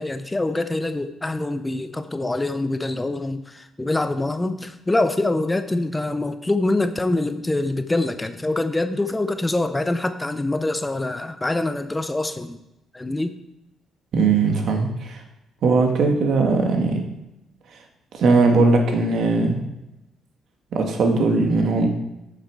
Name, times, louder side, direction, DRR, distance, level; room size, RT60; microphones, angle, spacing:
voice 1, 0.0-12.6 12.9-13.4, left 2 dB, 15° left, 10 dB, 0.6 m, -25 dB
voice 2, 14.1-15.2 15.6-17.0 18.1-19.6 20.7-21.9, right 3 dB, 65° right, 3 dB, 1.6 m, -19 dB
9.0 x 6.7 x 4.7 m, 0.92 s
cardioid pair, 90°, 0 cm